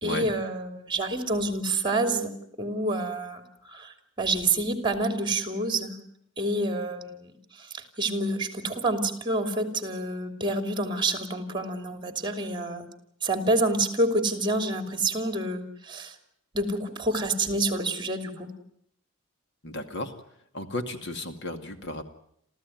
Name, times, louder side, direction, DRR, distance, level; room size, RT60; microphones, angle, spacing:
voice 1, 0.0-2.3 2.6-3.4 3.7-5.9 6.4-7.3 7.6-12.8 13.2-16.1 16.5-18.5, right 2 dB, 25° right, 7 dB, 3.0 m, -28 dB
voice 2, 19.6-20.1 20.5-22.0, left 1 dB, 55° left, 7 dB, 2.3 m, -34 dB
28.5 x 15.0 x 9.3 m, 0.71 s
head